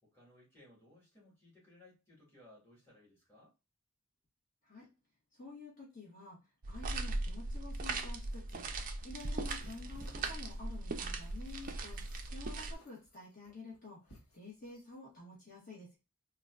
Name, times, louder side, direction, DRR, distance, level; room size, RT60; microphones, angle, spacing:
voice 1, 0.0-3.5, left 1 dB, 10° left, 2.0 m, -61 dB
voice 2, 5.4-6.4 6.7-8.7 9.0-14.0 14.3-16.0, left 3 dB, 40° left, 1.5 m, -50 dB
sound 1, 6.6-12.7, right 2 dB, 40° right, 0.4 m, -39 dB
sound 2, 9.1-14.9, equal, 75° left, 1.2 m, -59 dB
4.1 x 2.5 x 2.2 m
head